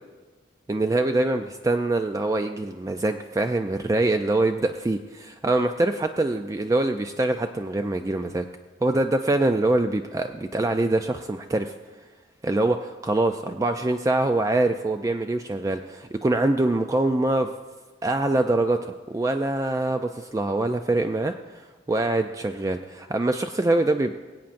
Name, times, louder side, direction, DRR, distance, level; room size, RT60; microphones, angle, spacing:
voice 1, 0.7-8.5 8.8-11.7 12.4-17.5 18.0-21.6 21.9-24.1, right 2 dB, 20° right, 6 dB, 0.3 m, -24 dB
22.5 x 8.6 x 2.6 m, 1.3 s
head